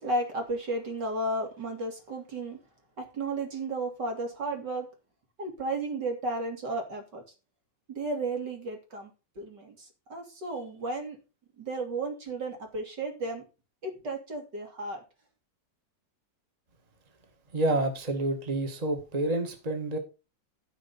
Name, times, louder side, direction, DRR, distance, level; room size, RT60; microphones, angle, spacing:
voice 1, 0.0-2.6 3.0-4.9 5.4-7.2 7.9-9.1 9.4-11.2 11.6-13.4 13.8-15.0, right 2 dB, 70° right, 3.6 m, -33 dB
voice 2, 17.5-20.0, right 2 dB, 20° right, 1.8 m, -28 dB
15.0 x 5.2 x 5.4 m
omnidirectional pair, 1.9 m